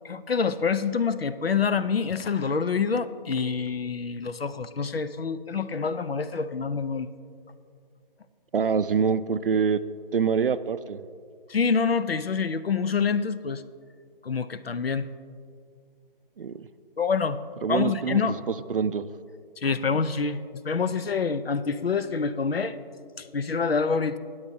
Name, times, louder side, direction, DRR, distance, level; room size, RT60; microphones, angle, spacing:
voice 1, 0.0-7.1 11.5-13.6 14.2-15.1 17.0-17.4 17.7-18.4 19.6-20.4 20.6-22.8 23.2-24.2, left 5 dB, 85° left, 13 dB, 0.6 m, -26 dB
voice 2, 8.5-9.8 10.1-11.0 16.4-16.7 17.6-18.2 18.7-19.1, right 6 dB, 65° right, 14 dB, 0.4 m, -25 dB
16.5 x 8.6 x 2.7 m, 2.2 s
figure-of-eight pair, 150°, 29 cm